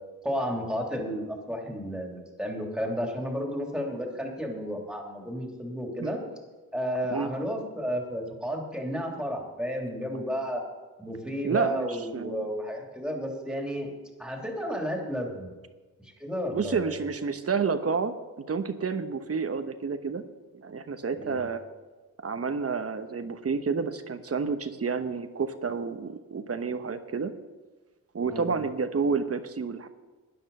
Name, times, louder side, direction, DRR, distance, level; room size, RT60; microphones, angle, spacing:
voice 1, 0.2-6.2 6.7-10.6 11.0-13.9 14.2-15.5 16.0-17.0 21.2-21.4 28.3-28.5, equal, ahead, 0 dB, 3.1 m, -32 dB
voice 2, 11.4-12.5 16.5-20.2 20.5-21.6 22.2-27.3 28.1-29.9, right 5 dB, 40° right, 9 dB, 1.1 m, -30 dB
12.5 x 10.0 x 5.5 m, 1.3 s
cardioid pair, 70°, 35 cm